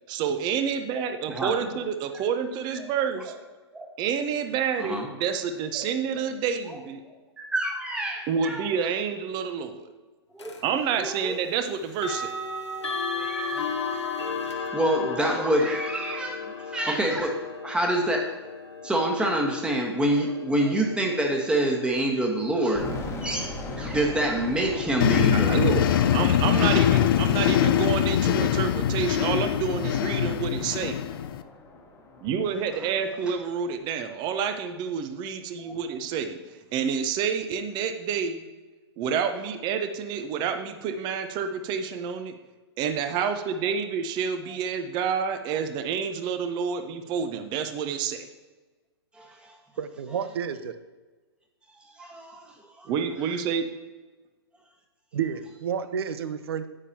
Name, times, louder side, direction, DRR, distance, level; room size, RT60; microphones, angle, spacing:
voice 1, 0.1-3.3 4.0-7.0 8.3-9.9 10.6-12.3 25.3-25.9 26.1-31.0 32.2-38.5 39.0-42.4 42.8-48.3 52.9-53.7, right 6 dB, 30° right, 8 dB, 0.8 m, -28 dB
voice 2, 7.4-8.6 10.3-10.5 10.9-11.4 13.1-18.3 18.8-22.9 23.2-26.1 26.5-26.7 35.6-35.8 49.2-49.5 52.0-52.5 52.8-52.9, right 1 dB, 5° right, 1 dB, 1.4 m, -27 dB
sound 1, 10.4-10.6 11.9-22.8, left 4 dB, 90° left, 1.2 m, -35 dB
sound 2, 22.7-33.6, left 2 dB, 20° left, 1.3 m, -40 dB
sound 3, 25.0-31.4, left 10 dB, 55° left, 0.5 m, -23 dB
voice 3, 49.8-50.7 55.1-56.7, right 7 dB, 65° right, 11 dB, 0.7 m, -30 dB
9.9 x 8.5 x 2.9 m, 1.3 s
hypercardioid pair, 115°, 14 cm